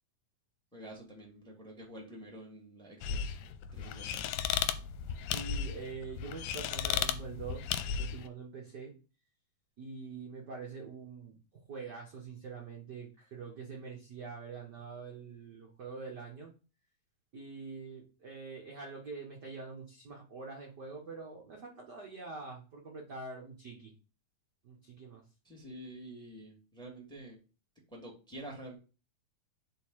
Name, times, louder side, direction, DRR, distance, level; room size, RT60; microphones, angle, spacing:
voice 1, 0.7-3.4 3.7-4.2 25.4-27.4 27.9-28.8, right 1 dB, ahead, 0 dB, 1.7 m, -48 dB
sound 1, 3.0-8.3, left 8 dB, 90° left, 2.4 m, -35 dB
voice 2, 5.3-8.9 9.8-11.4 11.7-16.5 17.3-23.9 24.6-25.2, right 4 dB, 55° right, -1 dB, 1.1 m, -45 dB
5.5 x 4.5 x 6.3 m, 0.34 s
omnidirectional pair, 4.1 m